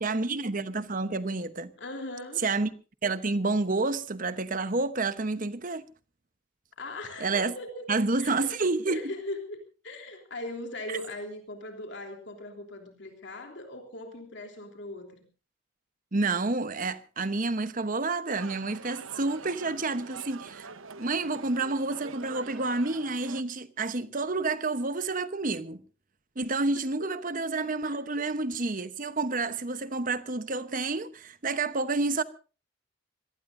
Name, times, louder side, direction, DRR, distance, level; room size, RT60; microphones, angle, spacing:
voice 1, 0.0-1.7 2.4-2.7 3.0-5.8 7.2-7.5 7.9-9.0 10.9-11.0 16.1-20.7 21.0-25.8 26.4-32.2, right 3 dB, 40° right, 1.0 m, -29 dB
voice 2, 1.8-2.4 6.8-7.9 8.2-8.6 8.9-15.2 26.4-27.1 27.8-28.0, left 1 dB, 60° left, 3.4 m, -40 dB
sound 1, 18.3-23.4, right 5 dB, 80° right, 1.0 m, -45 dB
25.5 x 18.0 x 2.7 m
head